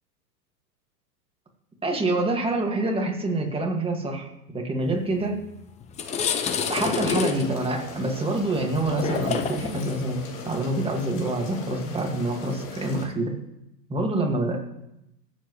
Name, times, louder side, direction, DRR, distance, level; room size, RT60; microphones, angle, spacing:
voice 1, 1.8-5.4 6.7-13.3 13.9-14.6, right 2 dB, 10° right, 1 dB, 1.9 m, -26 dB
sound 1, 5.3-5.4 5.8-13.1, left 7 dB, 15° left, 0.5 m, -30 dB
sound 2, 6.0-13.1, left 4 dB, 40° left, 3.1 m, -40 dB
22.0 x 7.7 x 3.1 m, 0.87 s
hypercardioid pair, 120°, 50 cm